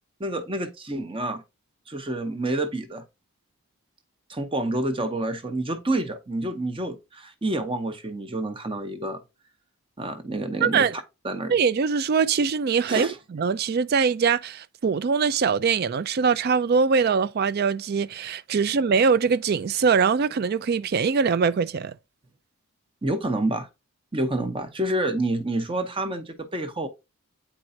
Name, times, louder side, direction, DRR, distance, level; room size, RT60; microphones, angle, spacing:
voice 1, 0.2-1.4 1.9-3.0 4.3-9.2 10.0-10.9 11.2-11.5 12.9-13.2 23.0-23.7 24.1-26.9, right 1 dB, 25° right, 0.8 m, -28 dB
voice 2, 10.6-10.9 11.5-21.9, right 5 dB, 45° right, 0.3 m, -22 dB
8.7 x 4.5 x 2.7 m
head